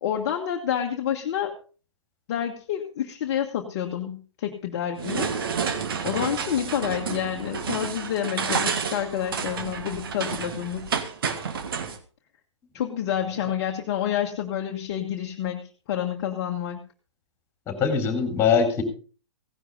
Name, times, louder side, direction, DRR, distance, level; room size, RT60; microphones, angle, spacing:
voice 1, 0.0-1.5 2.3-5.3 6.0-10.8 12.7-16.8, left 10 dB, 35° left, 2 dB, 1.4 m, -28 dB
sound 1, 5.0-12.0, right 6 dB, 50° right, 1.6 m, -30 dB
voice 2, 17.7-18.8, left 6 dB, 15° left, 5 dB, 3.8 m, -22 dB
16.5 x 11.0 x 3.9 m, 0.38 s
figure-of-eight pair, 125°, 15 cm